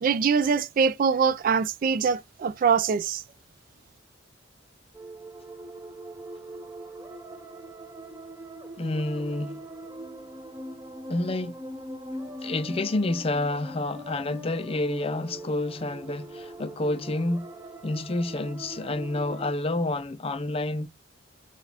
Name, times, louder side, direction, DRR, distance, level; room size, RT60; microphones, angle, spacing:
voice 1, 0.0-3.2, right 6 dB, 45° right, 0.3 m, -23 dB
sound 1, 4.9-19.5, right 1 dB, 15° right, 0.6 m, -41 dB
voice 2, 8.8-9.6 11.1-11.5 12.4-17.5 17.8-20.9, left 2 dB, 30° left, 0.4 m, -29 dB
4.8 x 2.4 x 3.3 m
head